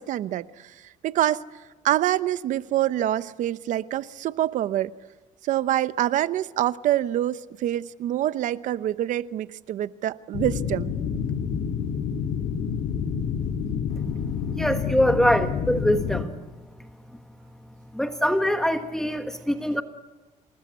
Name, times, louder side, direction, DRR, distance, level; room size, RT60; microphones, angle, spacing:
voice 1, 0.0-1.4 1.8-4.9 5.4-10.9, right 13 dB, 70° right, 0.8 m, -26 dB
sound 1, 10.3-16.3, left 7 dB, 70° left, 2.0 m, -28 dB
voice 2, 14.5-16.3 17.9-19.8, equal, 5° left, 1.2 m, -23 dB
28.0 x 20.0 x 8.3 m
cardioid pair, 130°, 14 cm